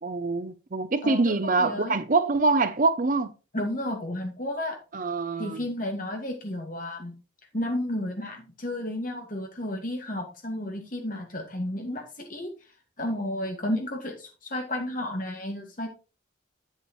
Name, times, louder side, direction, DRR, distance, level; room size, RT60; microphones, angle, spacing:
voice 1, 0.0-3.3 4.9-5.6, right 3 dB, 40° right, 0.5 m, -25 dB
voice 2, 1.0-2.0 3.5-4.8 5.4-7.1 7.5-12.5 13.0-15.9, left 1 dB, 40° left, 2.0 m, -32 dB
8.1 x 7.8 x 3.1 m
head